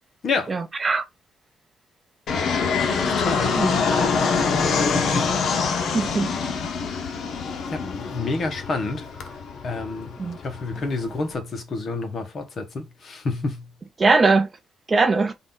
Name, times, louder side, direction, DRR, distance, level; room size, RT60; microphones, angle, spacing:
voice 1, 0.5-1.0 3.5-4.0 5.9-6.3 10.2-10.4 14.0-14.5 14.9-15.3, right 3 dB, 25° right, 0.5 m, -21 dB
Fixed-wing aircraft airplane, 2.3-11.3, left 5 dB, 60° left, 0.8 m, -25 dB
voice 2, 3.0-3.7 4.8-5.4 6.2-6.4 7.7-9.1 9.6-10.2 10.4-13.7, left 3 dB, 40° left, 1.1 m, -29 dB
3.7 x 2.5 x 3.8 m
cardioid pair, 155°, 0 cm